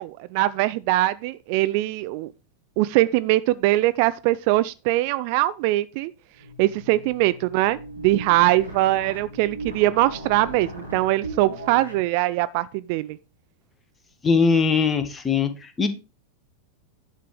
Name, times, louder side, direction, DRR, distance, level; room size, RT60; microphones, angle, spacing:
voice 1, 0.0-2.3 2.8-6.1 6.6-13.2, right 17 dB, 45° right, 0.4 m, -22 dB
sound 1, 6.3-12.1, right 1 dB, 85° right, 3.2 m, -38 dB
voice 2, 14.2-15.5 15.8-15.9, left 5 dB, 15° left, 1.5 m, -20 dB
10.0 x 6.6 x 4.8 m
figure-of-eight pair, 90°, 0 cm